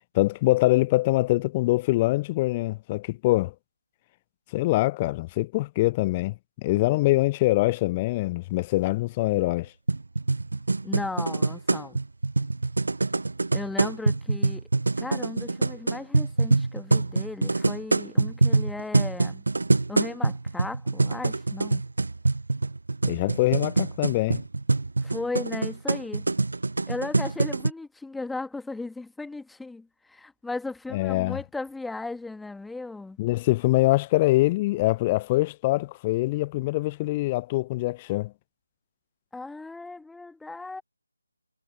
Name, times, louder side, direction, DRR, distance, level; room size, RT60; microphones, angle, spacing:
voice 1, 0.1-3.5 4.5-9.7 23.0-24.4 30.9-31.4 33.2-38.3, left 19 dB, 15° left, 0.5 m, -24 dB
sound 1, 9.9-27.7, right 3 dB, 60° right, 0.4 m, -25 dB
voice 2, 10.8-12.0 13.5-14.7 15.0-19.4 19.9-21.8 25.0-26.3 26.9-33.2 39.3-40.8, left 3 dB, ahead, 2.2 m, -36 dB
figure-of-eight pair, 155°, 0 cm